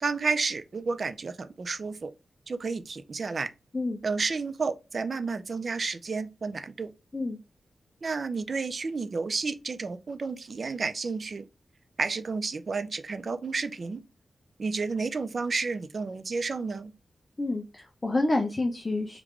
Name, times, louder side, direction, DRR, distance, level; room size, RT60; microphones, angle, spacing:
voice 1, 0.0-2.1 2.5-3.5 4.0-6.9 8.0-11.5 12.0-14.0 14.6-16.9, right 4 dB, 45° right, 0.4 m, -31 dB
voice 2, 17.4-19.2, left 2 dB, 25° left, 0.4 m, -28 dB
3.1 x 2.4 x 3.5 m
wide cardioid pair, 140°, 0 cm